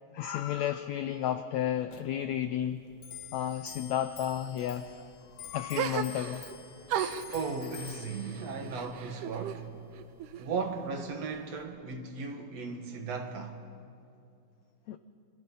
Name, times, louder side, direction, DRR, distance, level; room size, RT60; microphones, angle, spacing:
voice 1, 0.1-2.8 3.3-5.1 5.4-6.4 14.9-15.0, left 10 dB, 85° left, 1.5 m, -32 dB
Clock, 1.9-11.8, left 9 dB, 60° left, 2.5 m, -49 dB
sound 1, 5.8-6.6 6.9-9.6 9.9-10.8, right 9 dB, 75° right, 2.2 m, -36 dB
voice 2, 7.3-9.7 10.4-13.6, right 4 dB, 55° right, 2.3 m, -36 dB
28.0 x 26.0 x 5.6 m
omnidirectional pair, 4.0 m